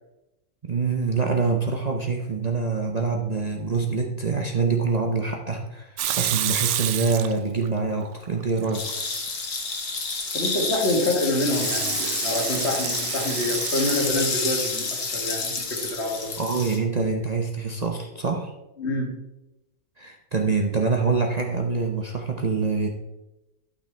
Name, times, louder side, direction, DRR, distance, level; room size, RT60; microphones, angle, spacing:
voice 1, 0.6-8.8 16.4-18.5 20.0-23.0, right 4 dB, 40° right, 1 dB, 0.7 m, -25 dB
Water tap faucet / Sink (filling or washing) / Liquid, 6.0-7.7 8.0-8.8 10.8-14.1, right 11 dB, 70° right, 0.8 m, -29 dB
sound 1, 8.7-16.8, left 4 dB, 80° left, 1.8 m, -29 dB
voice 2, 10.3-16.3 18.8-19.2, left 1 dB, 55° left, 0 dB, 2.0 m, -27 dB
12.0 x 6.0 x 3.3 m, 0.96 s
omnidirectional pair, 1.4 m